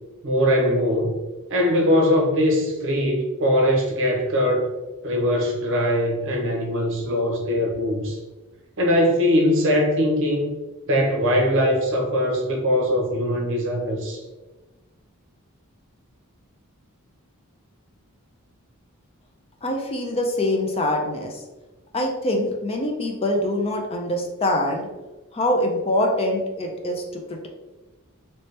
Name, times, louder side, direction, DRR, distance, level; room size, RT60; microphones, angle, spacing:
voice 1, 0.2-1.1 1.5-4.7 5.0-8.2 8.8-10.5 10.8-14.2, equal, 60° right, 1 dB, 0.8 m, -21 dB
voice 2, 19.6-21.4 21.9-24.9 25.3-27.5, left 1 dB, 25° left, 2 dB, 0.4 m, -24 dB
3.2 x 2.9 x 3.1 m, 1.2 s
head